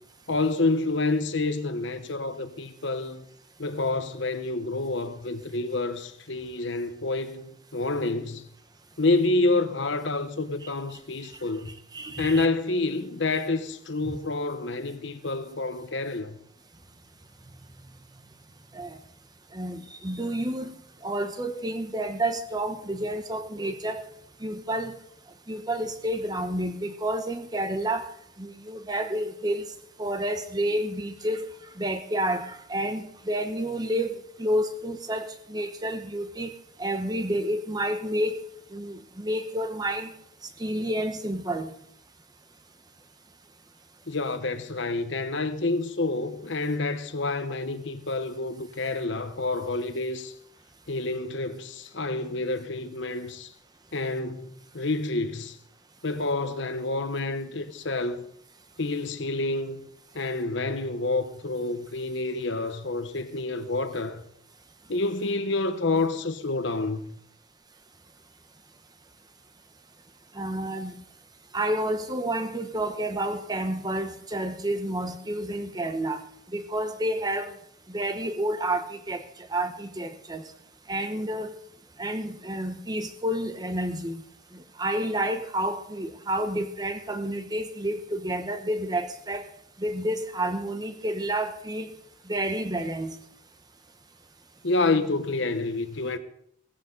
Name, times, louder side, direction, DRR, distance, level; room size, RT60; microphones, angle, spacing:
voice 1, 0.3-3.2 3.6-8.4 9.0-11.7 12.2-16.3 44.1-50.3 50.9-53.5 53.9-55.6 56.0-58.2 58.8-59.8 60.1-64.2 64.9-67.1 94.6-96.2, left 2 dB, 65° left, 1.0 m, -28 dB
voice 2, 11.7-12.5 14.0-14.2 18.7-19.0 19.5-20.7 21.0-24.1 24.4-25.0 25.5-28.1 28.4-29.7 30.0-31.5 31.8-38.4 38.7-40.1 40.6-41.7 70.3-71.0 71.5-76.2 76.5-77.5 77.9-80.5 80.9-81.6 82.0-84.2 84.5-89.5 89.8-91.9 92.3-93.2, right 1 dB, 20° right, 0.9 m, -30 dB
17.0 x 15.0 x 3.9 m
head